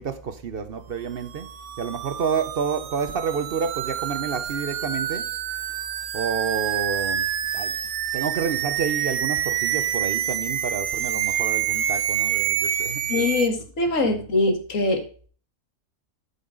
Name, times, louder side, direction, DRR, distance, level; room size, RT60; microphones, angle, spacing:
voice 1, 0.0-1.5 1.8-5.3 6.1-7.3 7.5-7.7 8.1-13.3 13.6-13.7 14.0-14.3, right 6 dB, 50° right, 0.7 m, -29 dB
sound 1, 1.2-13.5, right 10 dB, 75° right, 1.2 m, -27 dB
voice 2, 13.1-15.0, left 2 dB, 60° left, 2.0 m, -23 dB
12.5 x 5.5 x 3.7 m
omnidirectional pair, 1.6 m